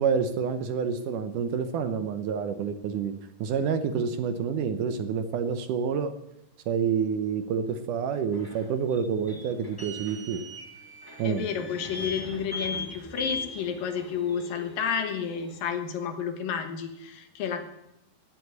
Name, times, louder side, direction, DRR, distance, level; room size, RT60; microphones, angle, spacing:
voice 1, 0.0-3.1 3.4-6.1 6.7-10.4 11.2-11.4, right 6 dB, 70° right, 10 dB, 2.2 m, -28 dB
sound 1, 8.3-15.6, left 2 dB, 10° left, 1.1 m, -39 dB
voice 2, 11.2-17.6, left 7 dB, 70° left, 8 dB, 3.0 m, -31 dB
16.5 x 7.8 x 9.3 m, 0.85 s
omnidirectional pair, 4.2 m